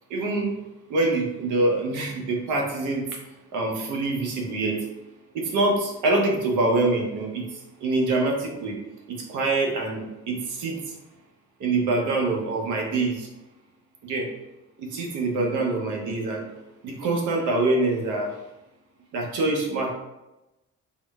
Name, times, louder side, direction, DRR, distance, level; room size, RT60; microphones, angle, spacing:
voice 1, 0.1-0.5 0.9-3.0 3.5-4.9 5.3-7.4 7.8-8.8 9.1-10.8 11.6-13.3 14.0-14.3 14.8-16.5 16.8-18.3 19.1-19.9, right 2 dB, 85° right, 1 dB, 0.7 m, -25 dB
3.7 x 2.0 x 2.2 m, 0.97 s
cardioid pair, 90°, 30 cm